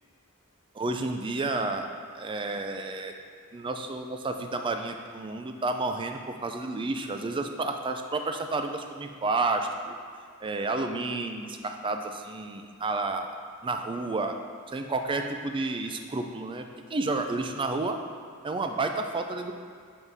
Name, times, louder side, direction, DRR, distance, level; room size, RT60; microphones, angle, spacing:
voice 1, 0.7-1.9 2.1-3.1 3.5-10.0 10.4-13.3 13.6-14.4 14.7-18.0 18.4-19.6, right 3 dB, 20° right, 5 dB, 0.3 m, -31 dB
6.9 x 3.7 x 4.0 m, 2.2 s
head